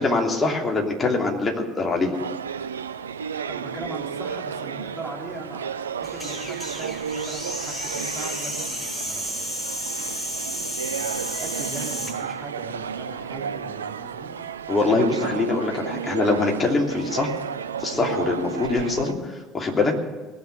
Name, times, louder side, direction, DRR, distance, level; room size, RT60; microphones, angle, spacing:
voice 1, 0.0-2.1 14.7-17.3 17.8-19.9, left 3 dB, 25° left, 0 dB, 3.0 m, -23 dB
sound 1, 2.1-19.1, right 7 dB, 80° right, 0.4 m, -33 dB
voice 2, 3.2-9.6 10.0-14.4 18.2-18.3 19.7-19.9, right 2 dB, 15° right, -3 dB, 4.5 m, -40 dB
sound 2, 6.0-12.2, equal, ahead, 6.2 m, -32 dB
20.0 x 6.8 x 8.1 m, 1.3 s
figure-of-eight pair, 60°, 0 cm